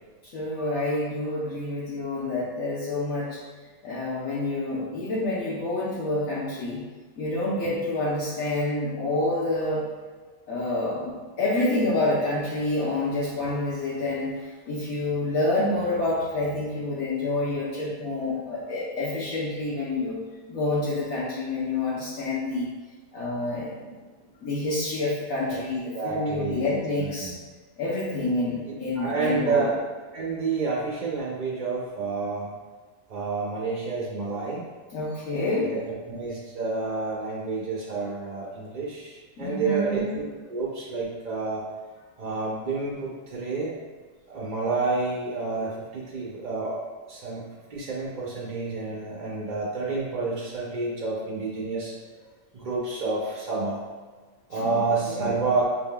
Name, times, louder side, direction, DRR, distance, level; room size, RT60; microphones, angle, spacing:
voice 1, 0.3-3.4 3.8-6.8 7.2-9.8 10.5-20.2 20.5-22.7 23.1-23.9 24.4-27.3 27.8-29.7 34.9-35.7 39.4-40.1 54.5-54.8 55.1-55.4, left 2 dB, 75° left, -8 dB, 1.2 m, -28 dB
voice 2, 25.9-27.4 29.0-29.8 30.1-32.5 33.1-34.6 35.6-35.8 36.1-41.6 42.2-43.7 44.3-47.4 47.7-51.9 52.5-53.8 54.5-55.6, right 3 dB, 45° right, -5 dB, 0.6 m, -29 dB
5.8 x 3.7 x 2.2 m, 1.3 s
omnidirectional pair, 1.5 m